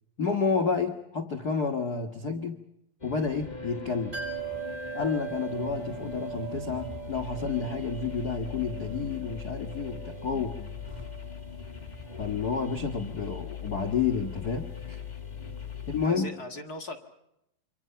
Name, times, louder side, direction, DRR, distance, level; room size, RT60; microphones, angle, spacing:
voice 1, 0.2-2.6 3.0-4.1 4.9-10.7 12.2-15.0 15.9-16.3, left 5 dB, 65° left, 4 dB, 0.9 m, -30 dB
sound 1, 3.0-16.1, left 6 dB, 15° left, 1.5 m, -40 dB
sound 2, 4.1-15.7 16.0-16.1, right 9 dB, 20° right, 8.0 m, -42 dB
voice 2, 16.0-17.0, left 2 dB, 40° left, 3 dB, 1.5 m, -40 dB
28.5 x 25.5 x 5.7 m, 0.82 s
omnidirectional pair, 4.2 m